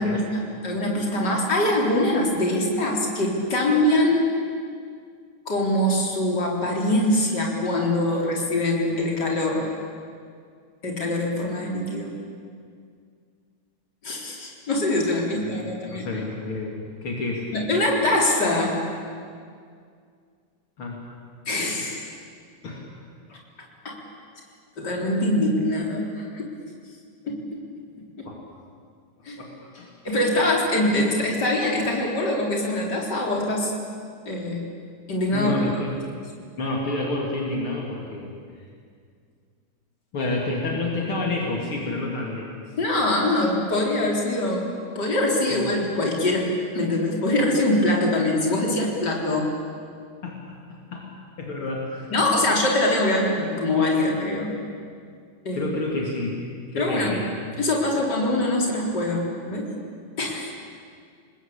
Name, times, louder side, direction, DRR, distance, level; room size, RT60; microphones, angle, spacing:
voice 1, 0.0-4.3 5.5-9.7 10.8-12.1 14.0-16.1 17.5-18.8 21.5-22.1 23.3-23.4 23.8-24.0 24.8-26.5 27.2-27.6 29.2-29.4 30.0-33.7 34.3-34.6 35.1-35.7 42.8-49.5 52.1-54.5 55.4-55.7 56.8-57.2 57.6-59.7 60.2-60.5, left 1 dB, 50° left, -1 dB, 4.7 m, -23 dB
voice 2, 15.4-17.5 20.8-21.0 22.6-22.9 28.2-28.4 29.4-29.9 35.3-35.9 36.6-38.3 40.1-42.6 45.5-45.6 50.2-50.4 50.9-51.1 51.4-52.1 55.5-56.4 56.7-57.3, left 2 dB, 70° left, -2 dB, 3.9 m, -29 dB
29.5 x 20.5 x 8.8 m, 2.2 s
omnidirectional pair, 2.4 m